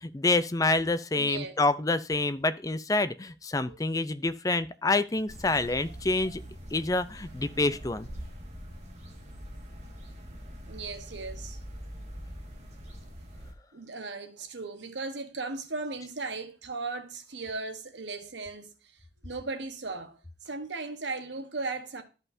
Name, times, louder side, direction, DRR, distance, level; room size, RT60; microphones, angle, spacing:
voice 1, 0.0-6.4 6.7-8.1, left 2 dB, 20° left, 0.5 m, -27 dB
voice 2, 1.1-1.5 3.6-3.8 10.7-11.6 13.7-18.7 19.2-22.0, right 3 dB, 85° right, 1.2 m, -37 dB
sound 1, 5.3-13.5, equal, 40° right, 1.9 m, -43 dB
13.0 x 5.6 x 2.7 m
head